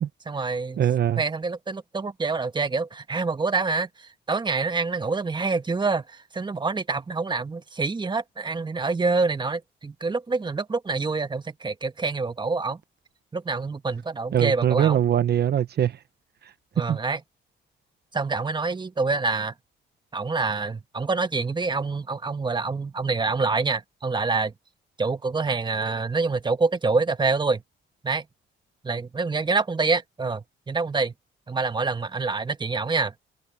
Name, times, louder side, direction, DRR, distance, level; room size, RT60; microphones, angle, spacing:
voice 1, 0.3-0.8 1.2-12.8 13.3-15.0 16.7-17.2 18.1-19.5 20.1-24.5 25.0-27.6 28.0-28.2 28.8-31.1 31.5-33.1, right 4 dB, 25° right, 1.3 m, -26 dB
voice 2, 0.8-1.2 14.3-16.0 16.4-16.5 16.9-17.0, right 10 dB, 55° right, 0.8 m, -22 dB
cardioid pair, 90°, 20 cm